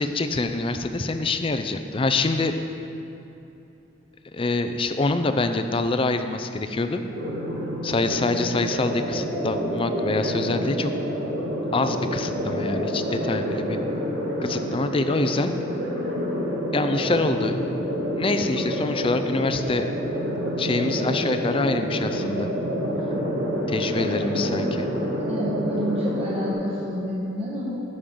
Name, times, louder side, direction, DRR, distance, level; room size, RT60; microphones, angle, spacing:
voice 1, 0.0-2.5 4.3-7.0 7.8-10.9 11.7-13.8 14.4-15.5 16.7-17.6 18.2-19.8 20.6-22.5 23.7-24.9, left 3 dB, 25° left, 8 dB, 0.4 m, -25 dB
sound 1, 7.1-26.5, equal, 70° right, 1.8 m, -28 dB
voice 2, 25.3-27.8, equal, 30° right, -7 dB, 1.2 m, -29 dB
15.5 x 6.6 x 3.8 m, 2.9 s
head